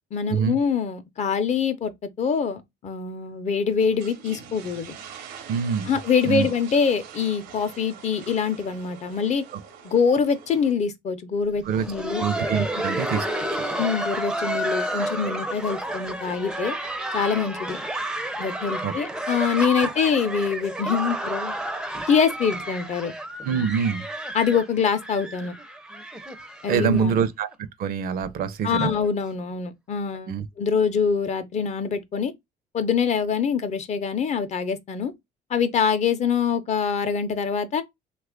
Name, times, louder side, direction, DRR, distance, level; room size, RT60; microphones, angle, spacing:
voice 1, 0.1-1.9 2.2-5.0 5.9-9.4 9.8-12.2 12.7-12.8 13.8-16.8 17.1-17.8 18.4-21.5 22.1-23.1 24.3-25.5 26.6-27.1 28.6-32.3 32.7-35.1 35.5-37.8, left 6 dB, 45° left, 0.6 m, -24 dB
sound 1, 3.7-10.7, right 7 dB, 85° right, 0.8 m, -44 dB
voice 2, 5.5-6.0 6.2-6.5 11.7-11.8 12.2-13.6 18.8-18.9 23.4-24.0 26.7-27.5 27.8-28.9 30.3-30.5, right 7 dB, 60° right, 0.5 m, -25 dB
Laughter, 11.6-27.3 27.5-27.6 28.2-28.3 28.9-29.1 30.1-30.2, right 1 dB, 5° right, 0.4 m, -31 dB
2.9 x 2.4 x 3.5 m
cardioid pair, 110°, 17 cm